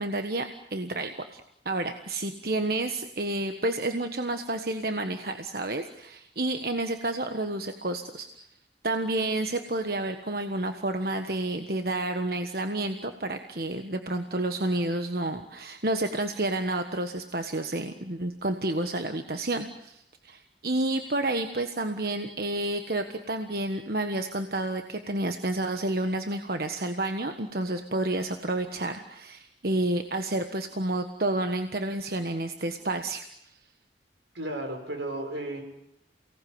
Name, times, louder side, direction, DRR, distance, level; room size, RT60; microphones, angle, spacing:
voice 1, 0.0-8.3 8.8-33.5, right 2 dB, 55° right, 6 dB, 1.4 m, -30 dB
voice 2, 34.3-35.6, right 1 dB, 85° right, 4 dB, 6.6 m, -33 dB
29.0 x 18.5 x 9.6 m, 0.78 s
head